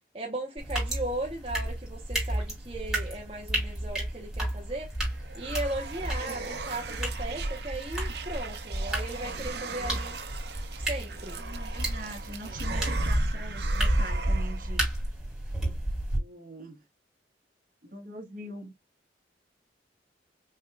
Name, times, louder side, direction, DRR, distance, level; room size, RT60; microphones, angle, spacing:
voice 1, 0.1-4.9 5.3-10.1 10.8-11.4 12.4-12.6, right 1 dB, 30° right, 0.9 m, -37 dB
sound 1, 0.6-16.2, right 1 dB, ahead, 2.6 m, -32 dB
sound 2, 4.8-14.8, right 4 dB, 70° right, 0.9 m, -39 dB
voice 2, 11.3-15.0 16.2-16.8 17.8-18.7, right 1 dB, 50° right, 1.4 m, -43 dB
5.4 x 3.3 x 2.3 m
head